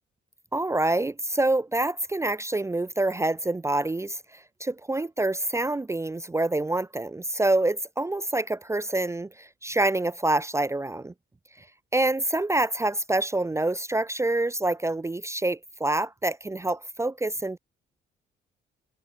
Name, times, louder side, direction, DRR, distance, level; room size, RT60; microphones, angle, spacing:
voice 1, 0.5-4.2 4.6-11.1 11.9-17.6, right 2 dB, 15° right, 0.6 m, -26 dB
cardioid pair, 90°, 20 cm